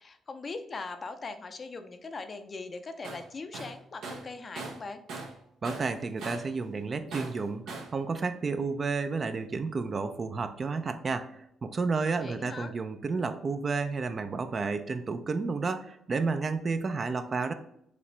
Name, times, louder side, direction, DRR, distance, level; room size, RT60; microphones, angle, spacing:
voice 1, 0.0-5.0 12.2-12.7, left 3 dB, 35° left, 8 dB, 0.5 m, -40 dB
Tools, 3.0-3.3 3.5-5.4 5.6-6.6 7.1-8.0, right 3 dB, 80° right, 0.9 m, -40 dB
voice 2, 5.6-17.5, right 4 dB, 40° right, 8 dB, 0.5 m, -31 dB
5.0 x 2.8 x 3.3 m, 0.77 s
cardioid pair, 90°, 0 cm